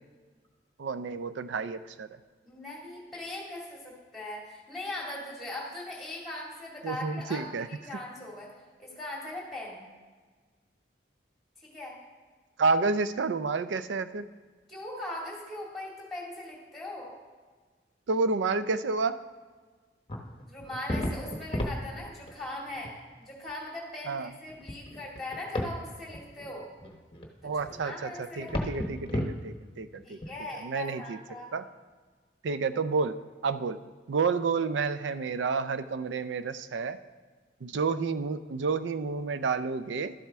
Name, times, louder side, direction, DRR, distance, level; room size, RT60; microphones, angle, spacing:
voice 1, 0.8-2.1 6.8-7.7 12.6-14.3 18.1-19.2 24.1-24.3 27.4-28.1 28.4-30.2 30.6-31.2 31.5-31.6 32.4-33.2 33.4-33.8 34.1-37.0 37.6-40.1, right 4 dB, 85° right, 12 dB, 0.4 m, -30 dB
voice 2, 2.5-8.5 8.8-9.9 11.6-12.0 14.7-17.1 20.5-22.9 23.2-26.6 27.4-28.5 30.0-31.5, left 1 dB, ahead, -3 dB, 2.2 m, -40 dB
sound 1, 20.1-22.4 22.7-22.9 23.5-23.6 24.3-25.8 26.1-30.3, left 1 dB, 30° left, 0.9 m, -34 dB
12.0 x 7.4 x 3.5 m, 1.4 s
head